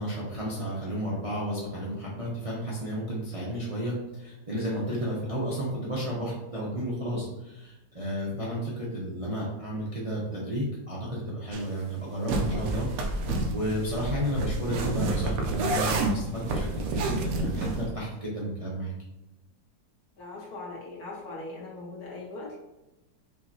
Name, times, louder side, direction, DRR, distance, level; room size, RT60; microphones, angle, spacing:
voice 1, 0.0-18.9, equal, 35° right, -6 dB, 0.5 m, -32 dB
sound 1, 11.5-11.7 12.3-17.9, right 2 dB, 65° right, 1.0 m, -29 dB
voice 2, 20.2-22.6, left 2 dB, 65° left, -4 dB, 1.7 m, -40 dB
5.4 x 2.8 x 2.7 m, 0.99 s
omnidirectional pair, 1.8 m